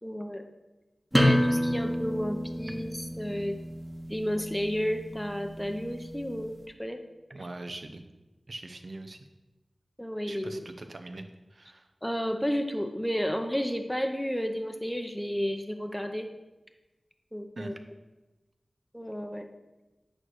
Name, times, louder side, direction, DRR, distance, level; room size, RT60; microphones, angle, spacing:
voice 1, 0.0-0.5 1.1-3.6 4.1-7.0 10.0-10.6 12.0-16.3 17.3-17.7 18.9-19.5, equal, 5° left, 4 dB, 0.7 m, -32 dB
sound 1, 1.1-6.5, equal, 10° right, 1.2 m, -30 dB
voice 2, 7.3-8.0 8.5-9.2 10.3-11.9 17.6-17.7, right 2 dB, 65° right, 6 dB, 0.7 m, -42 dB
8.8 x 3.2 x 6.3 m, 1.1 s
wide cardioid pair, 50°, 0 cm